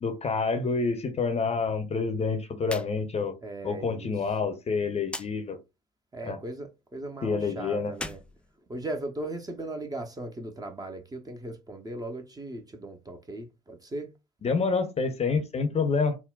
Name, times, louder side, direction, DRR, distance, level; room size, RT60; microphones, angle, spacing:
voice 1, 0.0-3.4 3.6-5.6 6.3-6.4 7.2-7.9 14.4-16.2, left 4 dB, 30° left, 0.7 m, -28 dB
sound 1, 2.6-2.9 3.2-3.3 5.1-5.3 7.9-9.2, left 1 dB, 5° left, 0.3 m, -39 dB
voice 2, 3.4-4.1 6.1-8.2 8.7-14.1, right 2 dB, 20° right, 0.7 m, -38 dB
3.7 x 2.2 x 2.3 m
figure-of-eight pair, 55°, 21 cm